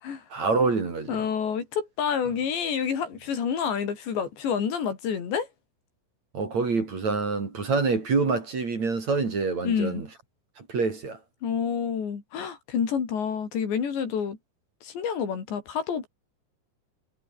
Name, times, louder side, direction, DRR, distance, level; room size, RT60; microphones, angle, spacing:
voice 1, 0.3-1.2 6.3-10.1 10.6-11.2, right 4 dB, 40° right, 4.9 m, -26 dB
voice 2, 1.1-5.5 9.6-10.0 11.4-14.4 14.8-16.1, left 7 dB, 70° left, 6.2 m, -28 dB
omnidirectional pair, 5.3 m